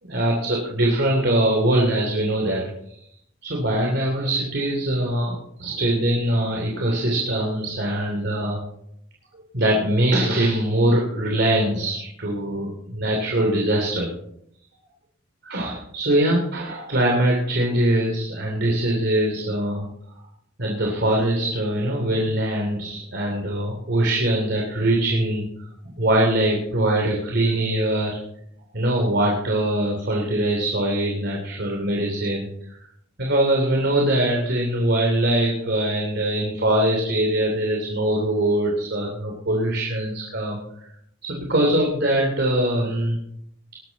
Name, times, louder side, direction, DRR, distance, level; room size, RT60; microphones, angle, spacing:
voice 1, 0.0-2.6 3.4-8.6 9.5-14.1 15.4-19.9 20.6-28.2 28.7-32.5 33.2-40.6 41.2-43.2, right 1 dB, 55° right, -1 dB, 2.9 m, -22 dB
20.5 x 11.5 x 4.0 m, 0.74 s
head